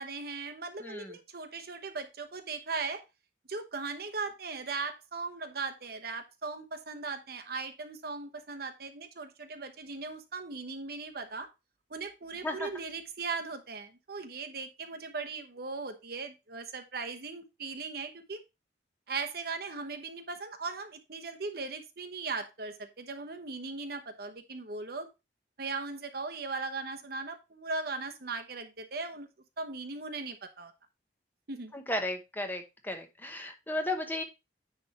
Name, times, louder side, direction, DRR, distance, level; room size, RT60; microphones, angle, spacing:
voice 1, 0.0-3.0 3.5-11.5 11.9-18.4 19.1-25.1 25.6-29.3 29.6-30.7 31.5-31.7, right 4 dB, 60° right, 6 dB, 1.0 m, -38 dB
voice 2, 0.8-1.2 12.4-12.7 31.7-34.2, left 1 dB, 10° left, 4 dB, 1.1 m, -34 dB
9.8 x 3.6 x 4.3 m, 0.25 s
head